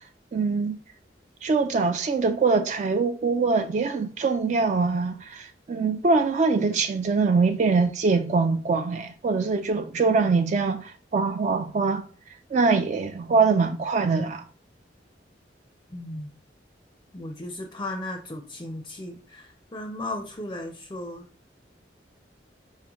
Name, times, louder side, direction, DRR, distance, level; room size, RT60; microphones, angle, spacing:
voice 1, 0.3-0.8 1.4-12.1 12.5-14.4, right 4 dB, 40° right, 0.3 m, -23 dB
voice 2, 15.9-16.3 17.1-21.3, left 1 dB, 20° left, 0.5 m, -36 dB
4.1 x 3.7 x 2.9 m
head